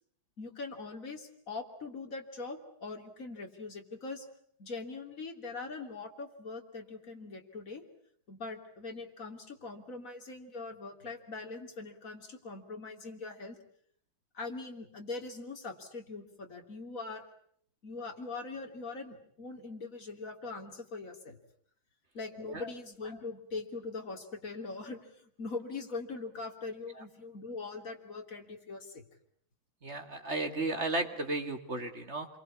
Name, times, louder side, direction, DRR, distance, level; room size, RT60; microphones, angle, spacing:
voice 1, 0.4-4.3 4.6-7.8 8.3-13.6 14.3-17.2 17.8-21.4 22.1-29.0, left 3 dB, 40° left, 3 dB, 3.4 m, -42 dB
voice 2, 29.8-32.3, right 2 dB, 35° right, 6 dB, 2.4 m, -34 dB
27.5 x 23.5 x 8.5 m, 0.65 s
omnidirectional pair, 2.3 m